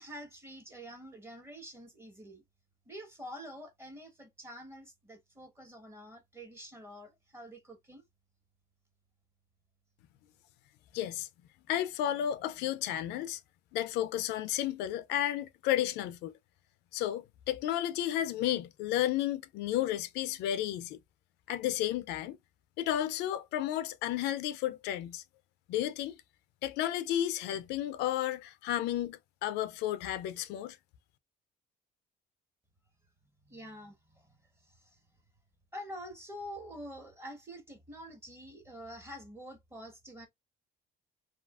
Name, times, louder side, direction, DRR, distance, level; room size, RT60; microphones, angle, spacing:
voice 1, 0.0-2.4 2.9-8.0 33.4-35.0 35.7-40.3, equal, 15° right, 1.1 m, -47 dB
voice 2, 10.9-11.3 11.7-13.4 13.7-16.3 16.9-21.0 21.5-22.4 22.8-25.2 25.7-26.2 26.6-30.8, left 12 dB, 85° left, 0.4 m, -32 dB
2.7 x 2.4 x 2.3 m
cardioid pair, 110°, 17 cm